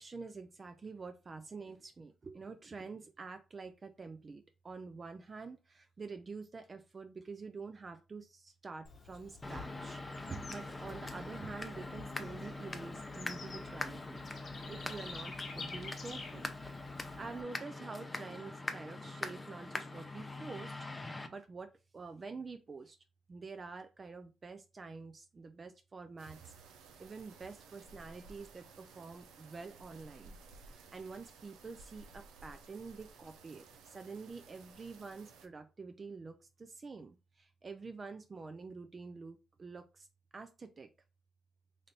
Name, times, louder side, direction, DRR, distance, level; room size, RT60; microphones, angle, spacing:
voice 1, 0.0-14.2 14.7-16.5 16.9-20.9 21.3-23.0 23.3-26.5 27.0-30.4 30.7-40.1 40.3-40.9, right 4 dB, 35° right, 8 dB, 0.4 m, -47 dB
Bird / Insect, 8.8-17.4, left 4 dB, 45° left, 0.9 m, -50 dB
sound 1, 9.4-21.3, left 2 dB, 15° left, 0.5 m, -43 dB
sound 2, 26.2-35.5, right 4 dB, 90° right, 0.6 m, -56 dB
3.2 x 2.6 x 4.1 m, 0.30 s
cardioid pair, 90°, 0 cm